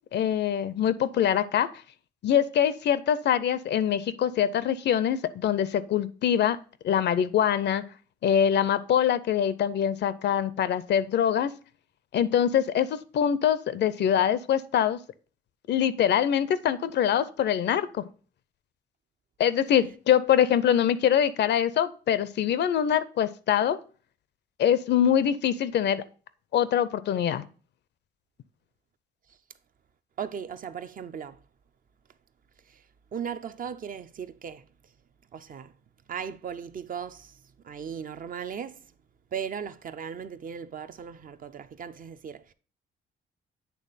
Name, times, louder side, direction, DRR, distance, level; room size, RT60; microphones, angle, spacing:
voice 1, 0.1-1.7 2.2-6.6 6.8-7.8 8.2-11.5 12.1-15.0 15.7-18.1 19.4-23.8 24.6-26.0 26.5-27.4, left 9 dB, 60° left, 0.5 m, -24 dB
voice 2, 30.2-31.4 32.6-34.9 35.3-35.8 36.1-38.9 39.3-42.5, right 7 dB, 45° right, 0.5 m, -37 dB
8.4 x 3.3 x 4.0 m
cardioid pair, 90°, 20 cm